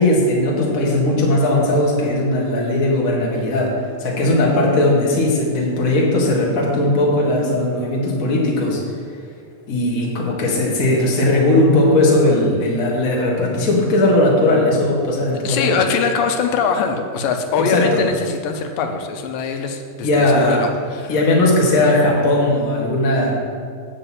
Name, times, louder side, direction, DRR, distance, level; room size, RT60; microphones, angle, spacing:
voice 1, 0.0-8.8 9.7-15.7 17.6-18.0 20.0-20.6 21.1-23.4, left 1 dB, 40° left, -2 dB, 1.3 m, -18 dB
voice 2, 15.4-21.2, left 5 dB, 90° left, 5 dB, 2.5 m, -22 dB
8.5 x 5.1 x 7.5 m, 2.1 s
omnidirectional pair, 3.8 m